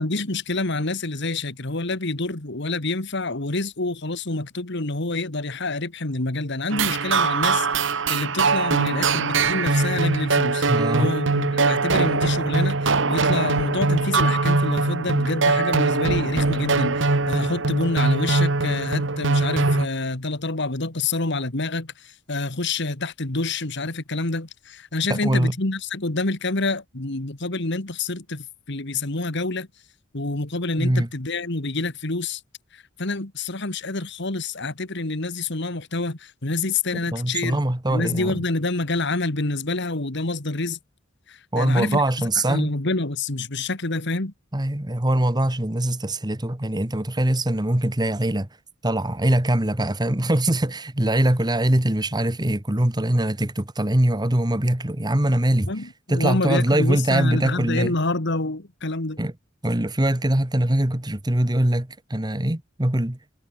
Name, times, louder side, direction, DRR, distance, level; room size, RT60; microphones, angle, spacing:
voice 1, 0.0-10.6 11.0-29.7 30.1-32.4 32.7-37.6 37.9-40.8 41.3-44.3 55.7-59.2, left 2 dB, 60° left, 2.2 m, -27 dB
sound 1, 6.7-19.9, right 3 dB, 65° right, 1.6 m, -22 dB
voice 2, 10.7-11.1 25.1-25.5 30.8-31.1 37.1-38.4 41.5-42.7 44.5-48.5 48.8-55.7 56.1-57.9 59.2-59.3 59.6-63.2, right 1 dB, 20° right, 1.5 m, -22 dB
head